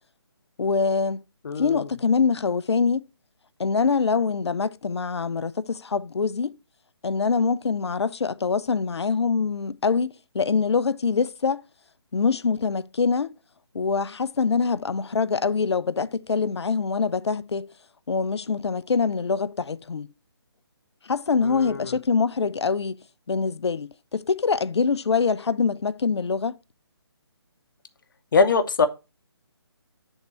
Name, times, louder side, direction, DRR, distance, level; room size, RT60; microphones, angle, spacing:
voice 1, 0.6-1.2 1.6-3.1 3.6-6.5 7.0-11.6 12.1-13.4 13.7-17.7 18.1-20.1 21.1-23.0 23.3-26.6, left 5 dB, 80° left, 0.4 m, -24 dB
voice 2, 1.4-1.9 21.4-21.9 28.3-28.9, left 4 dB, 50° left, 0.7 m, -22 dB
8.3 x 3.6 x 4.2 m
figure-of-eight pair, 150°, 14 cm